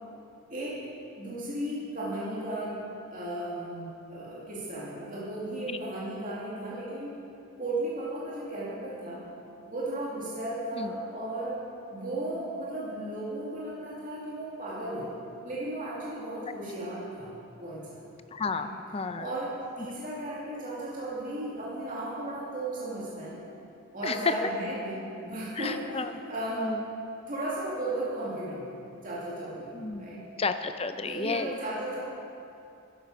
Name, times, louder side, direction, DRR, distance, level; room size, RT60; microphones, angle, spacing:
voice 1, 0.5-0.8 1.2-7.1 7.6-9.3 9.7-11.6 11.9-15.1 15.4-17.3 17.6-18.1 18.5-18.7 19.2-23.4 23.9-26.8 27.3-30.3 31.0-32.0, right 1 dB, 35° right, -8 dB, 2.4 m, -35 dB
voice 2, 18.3-19.3 24.0-24.3 25.6-26.1 26.6-26.8 29.7-30.0 30.4-31.5, left 4 dB, 25° left, 9 dB, 0.5 m, -31 dB
13.5 x 12.0 x 5.4 m, 2.7 s
head